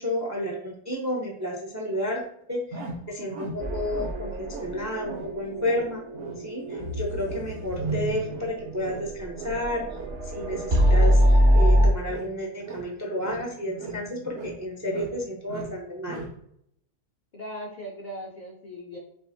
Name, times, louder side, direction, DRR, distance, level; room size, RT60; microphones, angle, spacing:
voice 1, 0.0-2.2 2.5-6.0 6.4-9.9 10.2-16.2, left 1 dB, 25° right, -1 dB, 0.4 m, -31 dB
sound 1, 2.7-4.2 4.5-4.8 5.0-5.3 5.6-11.2 11.5-12.4 12.6-14.1 14.3-15.2 15.5-16.4, right 3 dB, 65° right, 1.1 m, -39 dB
sound 2, 3.6-11.9, equal, 45° right, 0.9 m, -24 dB
voice 2, 17.3-19.0, equal, 50° left, -1 dB, 0.5 m, -38 dB
5.8 x 2.5 x 2.6 m, 0.73 s
omnidirectional pair, 1.4 m